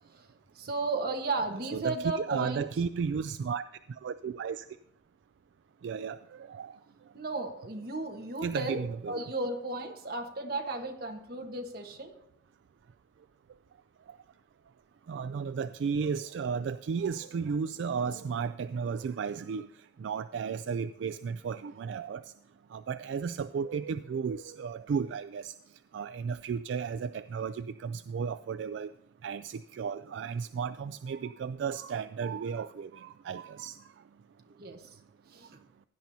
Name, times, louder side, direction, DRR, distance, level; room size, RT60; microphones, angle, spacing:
voice 1, 0.5-2.7 7.1-12.1 34.5-34.9 35.3-35.5, right 3 dB, 55° right, 4 dB, 1.3 m, -34 dB
voice 2, 1.7-3.6 4.0-4.6 5.8-6.8 8.4-9.2 15.1-19.7 20.0-22.2 22.7-25.5 25.9-28.9 29.2-33.7, right 6 dB, 80° right, 12 dB, 0.3 m, -34 dB
16.5 x 10.0 x 2.8 m, 0.73 s
head